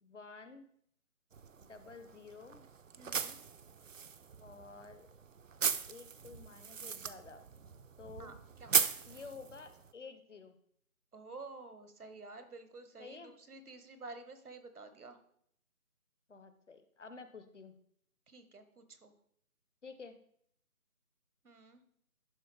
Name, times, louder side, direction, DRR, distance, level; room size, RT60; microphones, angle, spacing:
voice 1, 0.0-0.7 1.6-2.7 4.4-5.1 5.9-7.5 8.0-8.4 9.1-10.6 13.0-13.3 16.3-17.8 19.8-20.2, left 4 dB, 55° left, 10 dB, 0.8 m, -51 dB
sound 1, 1.3-9.9, right 6 dB, 60° right, 0.5 m, -38 dB
voice 2, 3.0-3.4 8.2-9.3 11.1-15.2 18.3-19.1 21.4-21.8, right 3 dB, 85° right, 9 dB, 1.3 m, -51 dB
11.0 x 4.1 x 3.3 m, 0.66 s
figure-of-eight pair, 170°, 44 cm